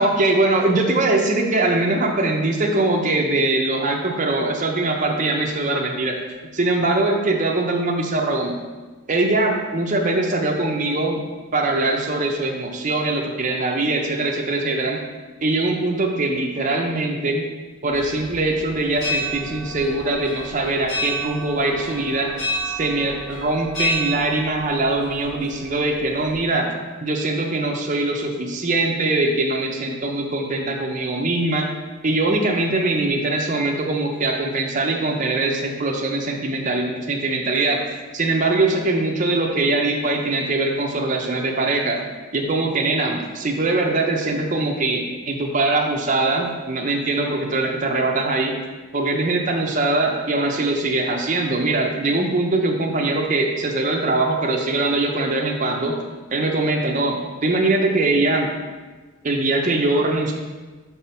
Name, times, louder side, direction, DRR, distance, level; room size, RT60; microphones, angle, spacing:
voice 1, 0.0-6.2 6.5-8.5 9.1-11.2 11.5-15.0 15.4-17.5 17.8-22.3 22.6-26.8 27.0-31.7 32.0-37.8 38.1-42.0 42.3-48.5 48.9-55.9 56.3-57.1 57.4-58.5 59.2-60.3, right 2 dB, 35° right, 0 dB, 0.7 m, -22 dB
sound 1, 17.9-26.4, equal, 55° left, 1.9 m, -31 dB
5.8 x 4.0 x 5.6 m, 1.3 s
head